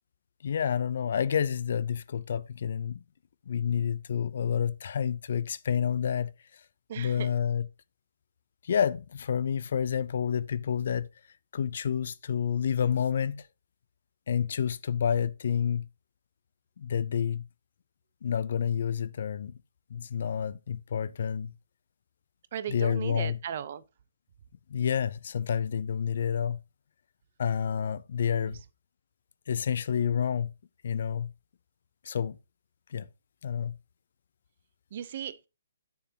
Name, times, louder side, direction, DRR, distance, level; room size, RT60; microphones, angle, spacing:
voice 1, 0.4-3.0 3.5-6.3 7.0-7.7 8.6-11.1 11.5-13.5 14.3-15.9 16.8-17.4 18.2-19.5 19.9-21.5 22.7-23.4 24.7-26.6 27.4-28.6 29.5-30.5 30.8-31.3 32.0-32.4 32.9-33.1 33.4-33.7, left 8 dB, 60° left, 0.5 m, -29 dB
voice 2, 6.9-7.3 22.5-23.8 28.4-28.5 34.9-35.5, right 9 dB, 50° right, 0.7 m, -37 dB
9.2 x 7.0 x 2.8 m
hypercardioid pair, 145°, 0 cm